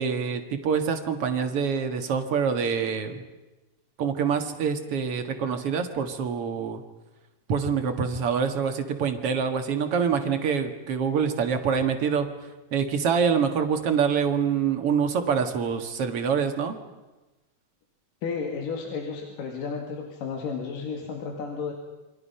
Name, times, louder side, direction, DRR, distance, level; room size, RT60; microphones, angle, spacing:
voice 1, 0.0-3.2 4.0-6.8 7.5-12.3 12.7-16.8, right 6 dB, 50° right, 6 dB, 2.2 m, -25 dB
voice 2, 18.2-21.7, left 5 dB, 70° left, 2 dB, 3.7 m, -32 dB
28.0 x 24.5 x 5.7 m, 1.1 s
omnidirectional pair, 4.1 m